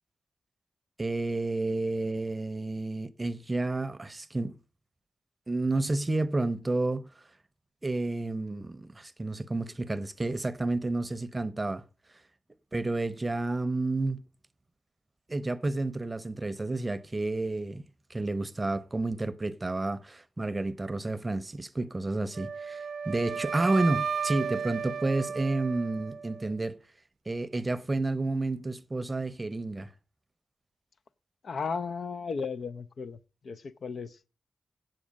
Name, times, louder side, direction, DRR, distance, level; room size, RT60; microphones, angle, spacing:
voice 1, 1.0-4.5 5.5-7.1 7.8-11.8 12.7-14.2 15.3-17.8 18.1-26.8 27.3-29.9, right 2 dB, 25° right, 0.7 m, -30 dB
Wind instrument woodwind instrument, 22.3-26.5, right 6 dB, 70° right, 0.4 m, -34 dB
voice 2, 31.4-34.2, left 5 dB, 70° left, 0.5 m, -35 dB
8.4 x 7.8 x 5.1 m
cardioid pair, 75°, 0 cm